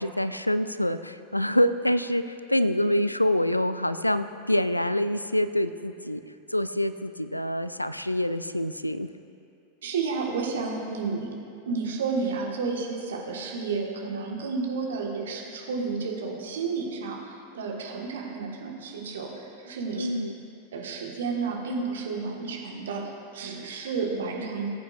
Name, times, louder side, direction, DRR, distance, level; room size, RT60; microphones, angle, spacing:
voice 1, 0.0-6.2 6.5-9.1 20.0-20.3, left 1 dB, 85° left, 13 dB, 0.3 m, -26 dB
voice 2, 9.8-11.3 11.6-17.2 17.5-20.1 20.7-24.7, right 4 dB, 60° right, -1 dB, 1.6 m, -31 dB
19.5 x 8.4 x 2.6 m, 2.6 s
figure-of-eight pair, 90°, 0 cm